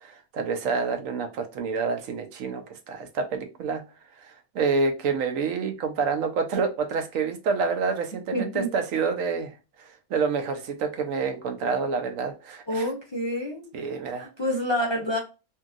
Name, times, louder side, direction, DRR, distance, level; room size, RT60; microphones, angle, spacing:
voice 1, 0.0-3.8 4.2-12.9 13.7-14.3, right 5 dB, 75° right, 6 dB, 1.0 m, -28 dB
voice 2, 8.3-8.7 12.7-13.8 14.4-15.2, equal, 45° left, -1 dB, 0.3 m, -27 dB
2.7 x 2.7 x 2.3 m, 0.30 s
omnidirectional pair, 1.4 m